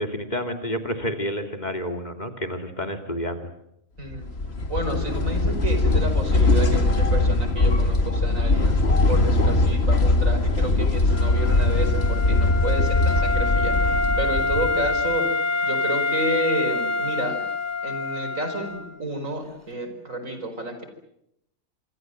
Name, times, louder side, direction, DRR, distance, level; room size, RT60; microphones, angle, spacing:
voice 1, 0.0-3.5, equal, 30° left, 6 dB, 2.8 m, -29 dB
sound 1, 4.1-15.1, left 2 dB, 50° left, 2.3 m, -21 dB
voice 2, 4.7-8.8 9.1-17.4 17.8-20.9, right 1 dB, 75° right, 8 dB, 5.4 m, -30 dB
Wind instrument woodwind instrument, 11.1-18.9, left 3 dB, 10° left, 2.5 m, -26 dB
26.5 x 25.0 x 7.7 m, 0.80 s
omnidirectional pair, 1.4 m